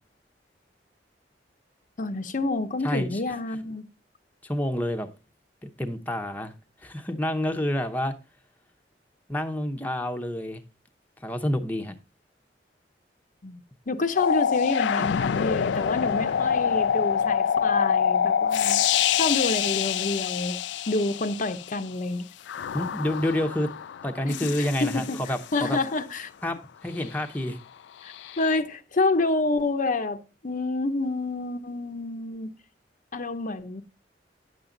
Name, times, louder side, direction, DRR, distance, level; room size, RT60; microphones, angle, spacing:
voice 1, 2.0-3.8 13.4-18.8 19.1-22.3 24.3-26.3 28.0-32.5 33.1-33.8, left 2 dB, 50° left, 0.8 m, -28 dB
voice 2, 2.8-3.2 4.4-5.1 5.6-6.5 6.8-8.1 9.3-10.6 11.2-11.9 22.7-23.7 24.0-25.8 26.4-26.6 26.8-27.6, left 1 dB, 10° left, 0.8 m, -28 dB
sound 1, 14.2-21.7 22.5-25.5 28.1-28.6, left 8 dB, 80° left, 0.4 m, -26 dB
9.9 x 7.3 x 3.8 m
head